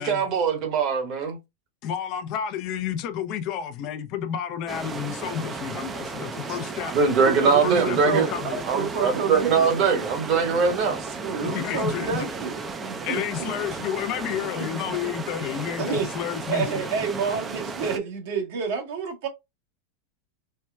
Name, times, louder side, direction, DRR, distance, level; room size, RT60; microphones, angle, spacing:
voice 1, 0.0-1.4 6.8-8.2 8.7-11.0, right 5 dB, 45° right, 1.1 m, -22 dB
voice 2, 1.8-6.9 7.6-8.6 11.4-12.2 13.0-16.9, left 9 dB, 50° left, 0.5 m, -30 dB
sound 1, 4.7-18.0, right 4 dB, 20° right, 0.5 m, -35 dB
voice 3, 7.2-8.5 8.7-10.1 11.2-13.5 14.6-14.9 15.8-16.1 16.5-19.3, right 5 dB, 70° right, 1.2 m, -29 dB
4.3 x 2.2 x 2.2 m
supercardioid pair, 130°, 0 cm